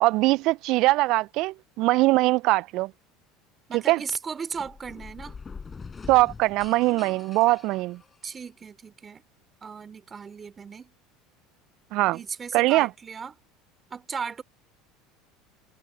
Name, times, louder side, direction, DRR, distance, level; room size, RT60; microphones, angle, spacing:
voice 1, 0.0-2.9 3.7-4.0 6.1-8.0 11.9-12.2 12.5-12.9, right 20 dB, 60° right, 0.3 m, -22 dB
voice 2, 3.7-5.4 8.2-9.2 9.6-10.9 12.1-13.3 13.9-14.4, right 6 dB, 30° right, 3.3 m, -36 dB
sound 1, 4.5-8.5, left 5 dB, 25° left, 5.7 m, -43 dB
hypercardioid pair, 80°, 0 cm